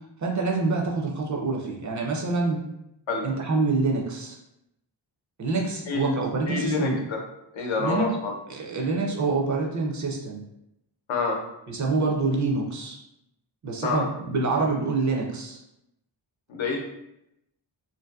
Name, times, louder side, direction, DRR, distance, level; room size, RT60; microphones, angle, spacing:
voice 1, 0.2-2.6 3.2-4.4 5.4-7.0 7.8-8.1 8.5-10.4 11.7-13.0 13.6-15.6, right 3 dB, 40° right, -1 dB, 0.4 m, -26 dB
voice 2, 6.5-7.2 7.5-8.3 11.1-11.4 13.8-14.1 16.5-16.8, left 4 dB, 80° left, 0 dB, 0.7 m, -27 dB
2.6 x 2.4 x 2.3 m, 0.82 s
wide cardioid pair, 155°, 47 cm